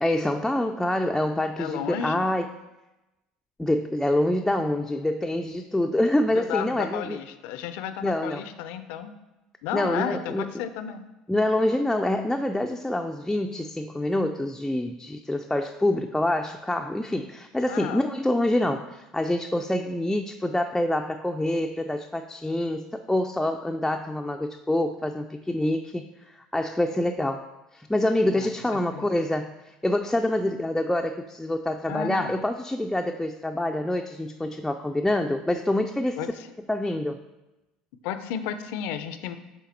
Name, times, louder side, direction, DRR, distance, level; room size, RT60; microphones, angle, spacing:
voice 1, 0.0-2.4 3.6-7.2 8.0-8.4 9.7-10.6 11.3-27.5 27.7-36.2 36.7-37.2, left 1 dB, 5° left, 3 dB, 0.3 m, -26 dB
voice 2, 1.6-2.2 6.3-9.1 9.6-11.0 17.7-18.0 28.3-29.1 31.9-32.3 36.2-36.5 38.0-39.4, left 9 dB, 65° left, 11 dB, 0.4 m, -33 dB
7.4 x 3.5 x 4.2 m, 1.0 s
hypercardioid pair, 70°, 3 cm